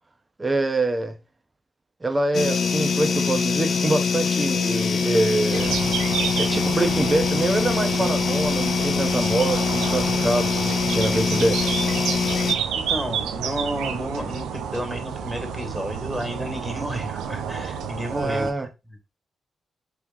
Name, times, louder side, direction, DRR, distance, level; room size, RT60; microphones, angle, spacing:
voice 1, 0.4-1.2 2.0-5.8 6.4-11.7 18.1-18.7, right 2 dB, 30° right, 0.9 m, -25 dB
sound 1, 2.3-12.6, left 5 dB, 65° left, 0.4 m, -23 dB
sound 2, 5.5-18.5, right 7 dB, 85° right, 0.5 m, -30 dB
voice 2, 12.7-18.7, equal, ahead, 1.8 m, -31 dB
3.5 x 3.0 x 3.7 m
supercardioid pair, 45°, 0 cm